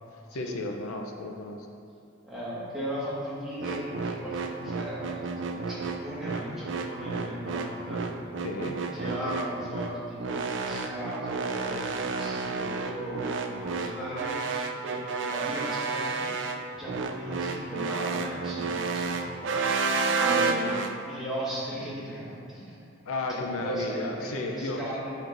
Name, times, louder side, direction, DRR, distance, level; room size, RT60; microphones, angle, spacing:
voice 1, 0.3-1.7 8.4-8.8 23.1-24.9, left 2 dB, 85° left, 3 dB, 0.5 m, -33 dB
voice 2, 2.2-5.2 5.5-8.1 8.9-16.3 16.7-19.6 20.2-20.8 21.1-22.8 23.3-25.1, right 1 dB, ahead, -10 dB, 1.5 m, -37 dB
sound 1, 3.6-20.9, right 4 dB, 55° right, 0.4 m, -30 dB
7.6 x 6.3 x 2.5 m, 2.5 s
head